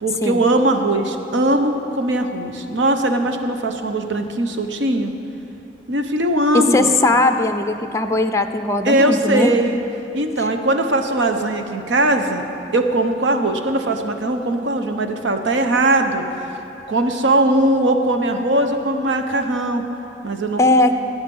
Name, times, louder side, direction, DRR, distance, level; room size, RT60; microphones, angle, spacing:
voice 1, 0.0-5.1 5.9-6.9 8.8-9.8 10.1-12.4 12.7-16.2 16.9-19.8 20.2-20.8, right 1 dB, 90° right, 6 dB, 0.9 m, -20 dB
voice 2, 6.5-9.5 20.6-20.9, left 2 dB, 15° left, 6 dB, 0.5 m, -18 dB
18.0 x 8.7 x 5.5 m, 2.9 s
head